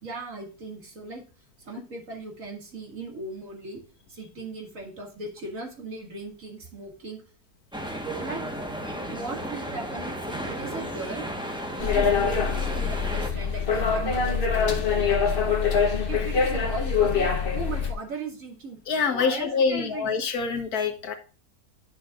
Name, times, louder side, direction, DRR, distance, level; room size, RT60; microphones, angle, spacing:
voice 1, 0.0-1.2 1.6-3.8 4.1-7.2 8.2-8.4 9.1-11.2 11.8-15.8 16.1-17.3 17.5-18.8 19.1-20.2, right 3 dB, 60° right, 1 dB, 2.5 m, -38 dB
sound 1, 7.7-13.3, equal, 5° right, 1.0 m, -34 dB
sound 2, 11.8-17.9, left 6 dB, 40° left, 1.1 m, -24 dB
voice 2, 18.9-21.1, left 5 dB, 80° left, 5 dB, 1.7 m, -25 dB
10.5 x 6.3 x 2.4 m, 0.36 s
omnidirectional pair, 1.6 m